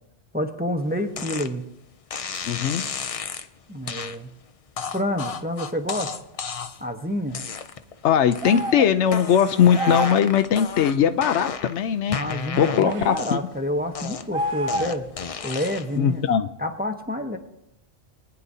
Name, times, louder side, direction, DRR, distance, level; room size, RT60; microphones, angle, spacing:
voice 1, 0.3-1.6 3.7-4.3 4.9-6.1 6.8-7.4 12.1-15.1 15.4-16.2 16.6-17.4, equal, 10° right, 4 dB, 0.8 m, -28 dB
sound 1, 1.2-1.5 2.1-3.5 3.9-4.2 4.8-6.9 7.3-7.9 8.3-8.7 9.1-11.8 12.1-13.6 13.9-16.0, left 6 dB, 45° left, 0.5 m, -32 dB
voice 2, 2.4-2.8 8.0-12.2 12.6-13.4 16.0-16.5, left 8 dB, 80° left, 9 dB, 0.9 m, -20 dB
sound 2, 8.4-8.9 9.7-10.3 12.8-13.3 14.3-15.1, right 1 dB, 40° right, 0.5 m, -28 dB
23.5 x 9.7 x 2.7 m, 0.82 s
omnidirectional pair, 1.2 m